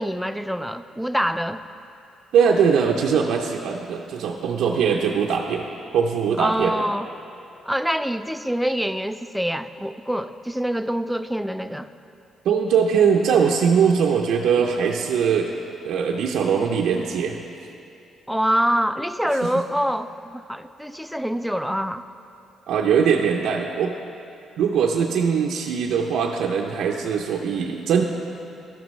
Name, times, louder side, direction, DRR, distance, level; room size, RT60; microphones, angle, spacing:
voice 1, 0.0-1.6 6.4-7.1 7.7-11.9 18.3-22.0, equal, ahead, 10 dB, 0.3 m, -25 dB
voice 2, 2.3-5.7 5.9-6.9 12.4-15.5 15.8-17.4 19.3-19.5 22.7-23.9 24.6-28.0, right 6 dB, 80° right, 0 dB, 0.5 m, -21 dB
12.0 x 11.0 x 3.1 m, 2.7 s
cardioid pair, 90°, 0 cm